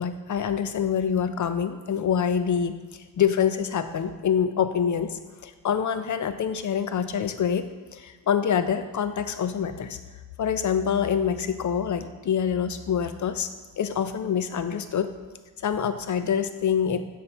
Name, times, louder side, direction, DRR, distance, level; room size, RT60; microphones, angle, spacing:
voice 1, 0.0-2.8 3.2-7.7 7.9-10.0 10.4-13.5 13.8-15.1 15.6-17.0, left 7 dB, 40° left, 10 dB, 0.6 m, -26 dB
6.8 x 5.4 x 4.3 m, 1.3 s
cardioid pair, 75°, 48 cm